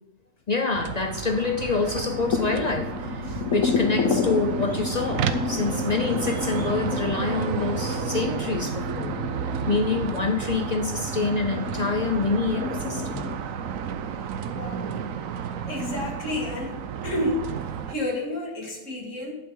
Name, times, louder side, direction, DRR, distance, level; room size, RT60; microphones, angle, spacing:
voice 1, 0.5-9.2 9.7-13.3, left 3 dB, 45° left, 6 dB, 0.5 m, -26 dB
sound 1, 0.7-18.0, right 8 dB, 85° right, 1.1 m, -32 dB
sound 2, 1.3-13.4, left 5 dB, 85° left, 1.3 m, -31 dB
voice 2, 14.4-14.8 15.7-17.5 17.9-19.3, left 1 dB, 70° left, 0 dB, 2.3 m, -30 dB
11.0 x 9.1 x 3.8 m, 0.98 s
omnidirectional pair, 1.4 m